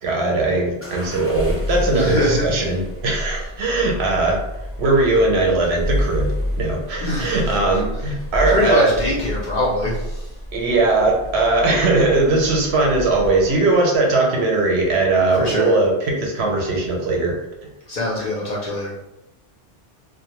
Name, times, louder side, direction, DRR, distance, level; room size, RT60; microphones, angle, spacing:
voice 1, 0.0-4.4 4.8-8.9 10.5-17.4, right 2 dB, 70° right, 0 dB, 0.8 m, -19 dB
sound 1, 0.8-13.7, equal, 15° left, 0.6 m, -29 dB
voice 2, 1.9-2.7 7.0-7.4 8.5-10.3 15.3-15.8 17.9-18.9, left 1 dB, 55° left, -4 dB, 0.6 m, -23 dB
2.2 x 2.1 x 2.9 m, 0.94 s
omnidirectional pair, 1.2 m